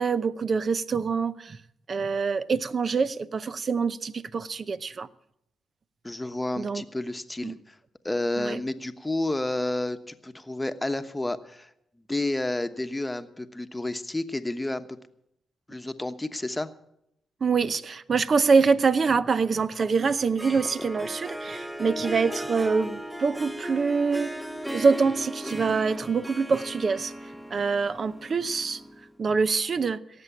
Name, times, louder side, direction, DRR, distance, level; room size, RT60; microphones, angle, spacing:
voice 1, 0.0-1.6 1.9-5.1 6.6-6.8 7.4-7.5 8.4-8.6 17.4-24.3 24.7-27.1 27.5-28.8 29.2-30.0, right 5 dB, 50° right, 0.7 m, -25 dB
voice 2, 6.0-7.8 8.0-15.0 15.7-16.7 20.8-20.9, left 2 dB, 15° left, 1.1 m, -31 dB
Harp, 20.1-29.1, equal, 10° right, 0.8 m, -37 dB
17.5 x 7.8 x 8.4 m
cardioid pair, 65°, 0 cm